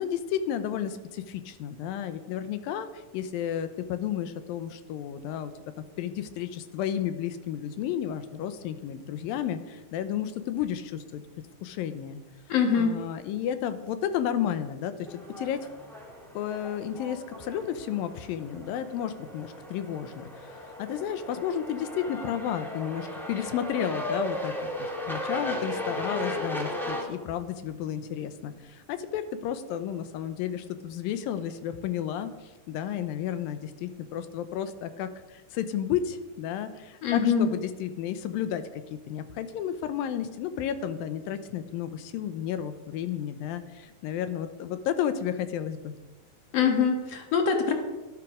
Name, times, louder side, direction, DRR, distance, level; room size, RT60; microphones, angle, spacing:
voice 1, 0.0-2.9 3.1-5.5 6.0-11.2 11.6-12.2 12.7-15.6 16.4-24.5 24.8-32.3 32.7-45.9, left 9 dB, 80° left, 11 dB, 2.5 m, -32 dB
voice 2, 12.5-13.0 37.0-37.5 46.5-47.7, left 6 dB, 55° left, 4 dB, 2.2 m, -23 dB
sound 1, 15.1-27.0, left 1 dB, ahead, 0.9 m, -36 dB
12.5 x 12.0 x 4.9 m, 1.2 s
omnidirectional pair, 4.1 m